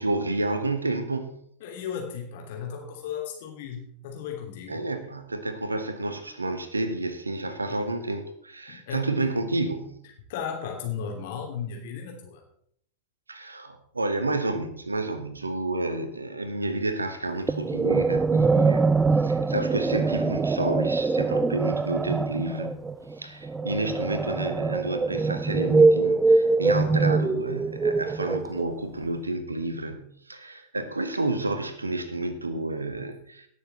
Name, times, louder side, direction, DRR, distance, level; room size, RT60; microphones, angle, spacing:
voice 1, 0.0-1.4 4.7-10.0 13.3-22.8 23.2-33.5, right 2 dB, 80° right, 10 dB, 1.2 m, -30 dB
voice 2, 1.6-4.8 7.7-7.8 8.7-9.0 10.3-12.4, left 7 dB, 55° left, 1 dB, 3.0 m, -35 dB
sound 1, 17.5-28.8, right 4 dB, 15° right, 0.3 m, -23 dB
sound 2, 21.3-25.3, left 1 dB, 20° left, 3.3 m, -47 dB
17.5 x 6.8 x 4.1 m, 0.67 s
figure-of-eight pair, 90°, 0 cm